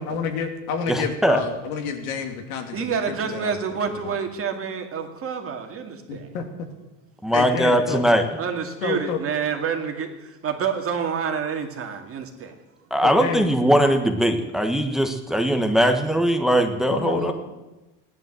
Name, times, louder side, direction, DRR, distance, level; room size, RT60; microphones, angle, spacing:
voice 1, 0.0-3.6 3.9-4.2 6.1-6.7 7.3-8.0 8.8-9.2 13.0-13.4 16.9-17.3, left 6 dB, 90° left, 4 dB, 2.8 m, -29 dB
voice 2, 0.9-1.4 7.2-8.2 12.9-17.3, equal, ahead, 6 dB, 1.3 m, -20 dB
voice 3, 2.7-6.3 8.4-12.5, right 6 dB, 35° right, 4 dB, 2.2 m, -28 dB
16.0 x 11.0 x 7.8 m, 1.1 s
supercardioid pair, 130°, 41 cm